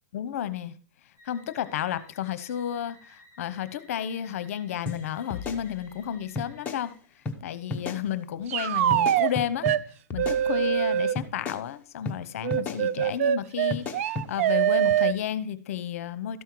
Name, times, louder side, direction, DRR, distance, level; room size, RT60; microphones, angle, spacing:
voice 1, 0.1-0.7 1.2-6.9 7.4-9.7 10.1-16.4, left 10 dB, 60° left, 14 dB, 0.9 m, -32 dB
sound 1, 1.2-7.2, left 1 dB, 15° right, 3.3 m, -57 dB
sound 2, 4.9-5.0 5.3-6.1 6.4-6.8 7.3-7.4 7.7-8.0 8.9-9.8 10.1-10.8 11.2-11.6 12.1-12.2 12.5-12.8 13.7-14.3, left 3 dB, 15° left, 1.0 m, -34 dB
sound 3, 8.5-9.3 9.6-9.8 10.2-11.2 12.4-15.2, right 11 dB, 55° right, 0.4 m, -24 dB
13.0 x 5.6 x 4.6 m, 0.39 s
hypercardioid pair, 155°, 9 cm